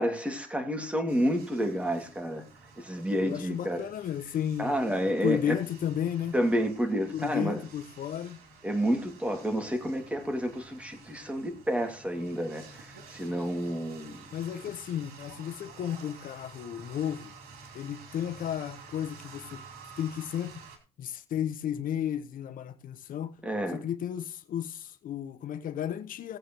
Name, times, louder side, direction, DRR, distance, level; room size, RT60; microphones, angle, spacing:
voice 1, 0.0-2.4 2.8-3.8 4.6-5.6 6.3-7.6 8.6-14.3 23.4-23.8, equal, 10° right, 2.4 m, -30 dB
sound 1, 1.1-20.8, right 4 dB, 80° right, 2.9 m, -51 dB
voice 2, 3.2-6.3 7.1-8.4 14.3-17.3 17.7-19.6 20.0-20.6 21.0-23.3 23.7-26.4, left 10 dB, 65° left, 1.0 m, -33 dB
18.0 x 8.1 x 3.1 m
cardioid pair, 95°, 15 cm